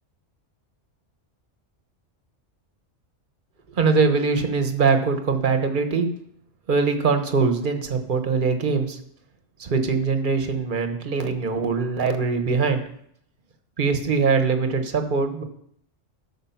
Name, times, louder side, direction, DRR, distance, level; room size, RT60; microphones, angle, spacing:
voice 1, 3.8-6.1 6.7-9.0 9.6-12.8 13.8-15.4, right 4 dB, 45° right, 6 dB, 1.3 m, -22 dB
13.5 x 6.2 x 5.8 m, 0.69 s
omnidirectional pair, 1.2 m